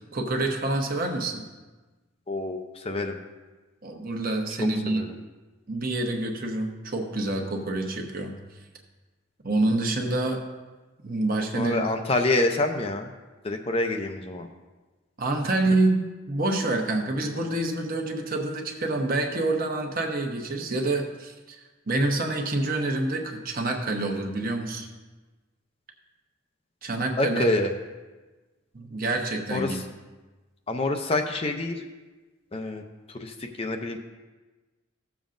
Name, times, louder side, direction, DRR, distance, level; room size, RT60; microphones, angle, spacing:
voice 1, 0.1-1.4 3.8-5.0 5.7-8.4 9.4-10.4 11.0-11.9 15.2-16.0 16.3-21.6 21.9-24.9 26.8-27.5 28.7-29.8, right 2 dB, 45° right, 3 dB, 1.0 m, -27 dB
voice 2, 2.3-3.2 4.6-5.2 11.4-13.1 13.4-14.5 27.2-27.7 29.5-29.8 30.7-31.8 32.5-32.8 33.1-34.0, left 2 dB, 30° left, 4 dB, 0.5 m, -27 dB
15.0 x 7.1 x 2.5 m, 1.2 s
head